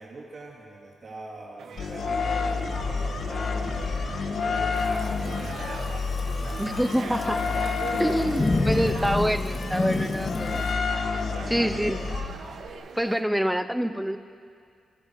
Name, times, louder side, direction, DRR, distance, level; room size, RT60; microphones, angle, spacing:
voice 1, 0.0-7.4 7.9-8.5 11.6-12.0, right 3 dB, 45° right, -2 dB, 2.7 m, -44 dB
sound 1, 1.6-13.2, right 5 dB, 75° right, 1.4 m, -41 dB
sound 2, 1.8-12.7, left 4 dB, 55° left, 1.6 m, -29 dB
Thunderstorm / Rain, 4.7-10.7, left 2 dB, 25° left, 1.8 m, -30 dB
voice 2, 6.6-7.4 8.0-10.6 11.5-12.0 13.0-14.2, equal, 5° right, 10 dB, 0.8 m, -26 dB
28.5 x 22.5 x 4.8 m, 2.2 s
wide cardioid pair, 125°, 0 cm